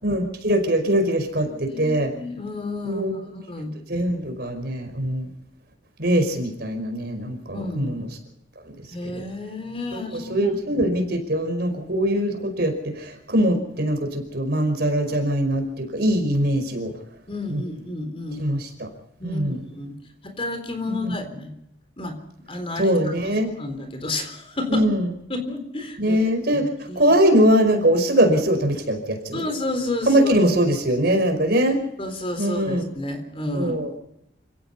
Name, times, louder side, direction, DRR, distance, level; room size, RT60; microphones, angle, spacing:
voice 1, 0.0-2.1 2.8-3.1 3.9-5.3 6.0-8.1 9.0-9.2 9.9-16.9 17.5-17.6 18.4-18.9 19.2-19.6 20.9-21.1 22.8-23.5 24.7-25.1 26.0-26.7 26.9-29.4 30.0-31.8 32.4-32.9 33.5-33.9, right 1 dB, 55° right, 6 dB, 5.2 m, -22 dB
voice 2, 1.4-3.0 3.3-3.7 7.5-7.9 8.9-10.8 17.3-18.5 19.2-20.0 20.2-21.5 22.0-22.2 22.5-22.9 23.6-24.9 25.3-26.2 26.5-27.0 29.3-30.5 32.0-33.8, left 2 dB, 30° left, 7 dB, 3.8 m, -31 dB
28.0 x 17.0 x 5.6 m, 0.77 s
head